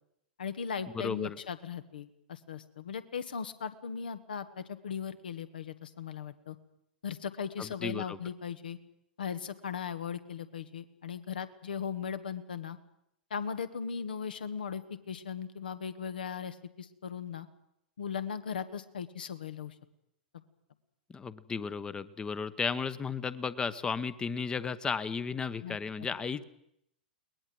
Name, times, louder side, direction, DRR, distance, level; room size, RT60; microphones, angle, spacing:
voice 1, 0.4-6.6 7.0-8.8 9.2-12.8 13.3-17.5 18.0-19.7 20.3-20.4 25.6-25.8, left 7 dB, 70° left, 12 dB, 1.6 m, -38 dB
voice 2, 0.9-1.4 7.6-8.2 21.1-26.4, left 5 dB, 15° left, 15 dB, 1.0 m, -34 dB
22.5 x 20.0 x 7.8 m, 0.77 s
figure-of-eight pair, 100°, 5 cm